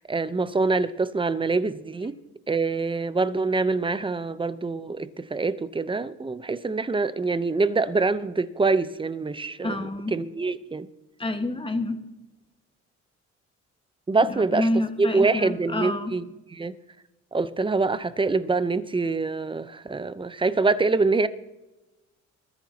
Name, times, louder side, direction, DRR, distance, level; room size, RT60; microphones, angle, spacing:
voice 1, 0.0-2.2 2.5-10.9 14.1-14.7 15.0-16.2 16.5-16.7 17.3-21.3, right 3 dB, 15° right, 0.8 m, -25 dB
voice 2, 9.6-10.1 11.2-12.0 14.2-16.1, left 1 dB, 15° left, 1.5 m, -28 dB
21.0 x 13.5 x 2.9 m
cardioid pair, 90°, 30 cm